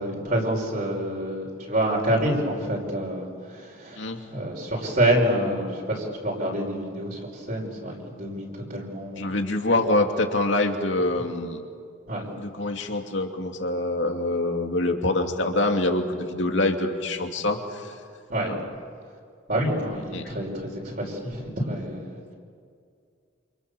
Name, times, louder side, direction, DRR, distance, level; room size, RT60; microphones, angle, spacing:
voice 1, 0.0-9.4 12.1-12.3 18.3-18.5 19.5-22.3, right 1 dB, 45° right, -2 dB, 5.5 m, -27 dB
voice 2, 9.2-11.6 12.4-17.9 18.4-18.6 20.1-20.3, left 2 dB, 65° left, 3 dB, 2.7 m, -25 dB
28.5 x 28.0 x 7.0 m, 2.2 s
head